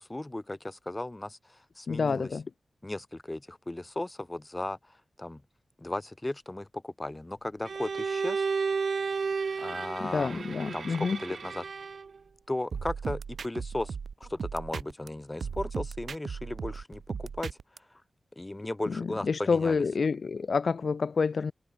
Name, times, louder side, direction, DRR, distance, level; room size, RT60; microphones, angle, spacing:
voice 1, 0.0-2.3 2.8-4.8 5.2-5.4 5.8-8.5 9.6-11.6 12.5-14.0 14.2-17.6 18.4-19.8, left 1 dB, 15° left, 5.6 m, -36 dB
voice 2, 1.9-2.4 10.0-11.2 18.9-21.5, left 5 dB, 60° left, 0.9 m, -28 dB
Bowed string instrument, 7.6-12.2, right 5 dB, 65° right, 3.5 m, -32 dB
sound 1, 12.7-15.1 15.4-17.8, right 6 dB, 85° right, 6.8 m, -37 dB
wide cardioid pair, 130°, 0 cm